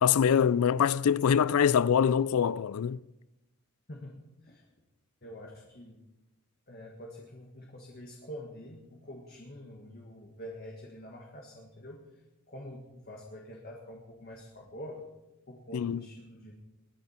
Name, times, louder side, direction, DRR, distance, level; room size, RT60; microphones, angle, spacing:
voice 1, 0.0-3.0 15.7-16.0, left 7 dB, 80° left, 0.4 m, -24 dB
voice 2, 3.9-4.7 5.2-6.0 6.7-15.1 15.5-16.5, equal, 45° left, 1.8 m, -46 dB
22.0 x 10.5 x 4.4 m
head